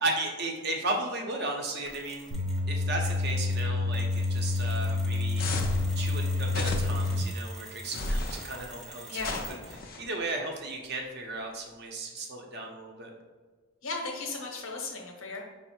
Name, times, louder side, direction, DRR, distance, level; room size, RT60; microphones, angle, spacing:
voice 1, 0.0-2.3 2.7-5.4 5.9-13.1, right 2 dB, 50° right, 1 dB, 0.6 m, -35 dB
Mechanisms, 1.9-2.7 3.0-9.9, right 1 dB, ahead, 0.6 m, -48 dB
sound 1, 2.3-7.2, left 3 dB, 85° right, 0.7 m, -28 dB
sound 2, 5.4-5.9 6.5-7.1 7.9-8.4 9.2-10.0, left 2 dB, 45° left, 0.4 m, -33 dB
voice 2, 9.1-9.4 13.8-15.4, left 3 dB, 70° left, 1 dB, 0.8 m, -36 dB
5.3 x 2.0 x 4.3 m, 1.3 s
head